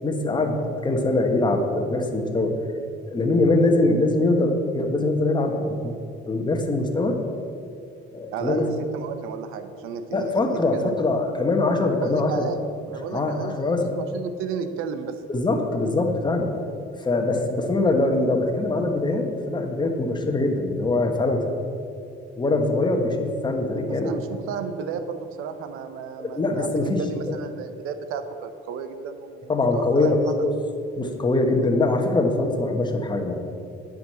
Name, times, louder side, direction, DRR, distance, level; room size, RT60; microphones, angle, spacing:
voice 1, 0.0-2.5 3.1-5.9 6.2-7.2 8.1-8.6 10.1-12.4 13.1-13.9 15.3-16.5 17.0-21.4 22.4-24.1 26.2-27.0 29.5-30.5 31.0-33.4, left 2 dB, 20° left, 3 dB, 1.3 m, -23 dB
voice 2, 8.3-11.0 12.0-12.6 12.8-13.6 13.9-15.2 23.7-30.4, right 6 dB, 85° right, 9 dB, 0.8 m, -33 dB
9.4 x 5.2 x 7.7 m, 2.5 s
cardioid pair, 110°, 21 cm